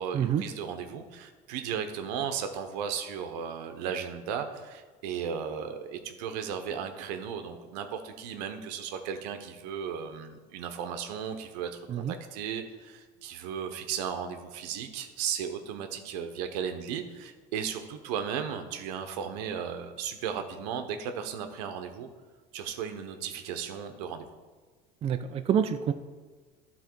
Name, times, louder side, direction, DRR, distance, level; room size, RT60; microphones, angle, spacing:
voice 1, 0.0-22.1 22.5-24.3, right 7 dB, 80° right, 7 dB, 0.9 m, -35 dB
voice 2, 25.0-25.9, right 8 dB, 30° right, 9 dB, 0.4 m, -27 dB
11.5 x 3.9 x 4.5 m, 1.4 s
supercardioid pair, 110°, 20 cm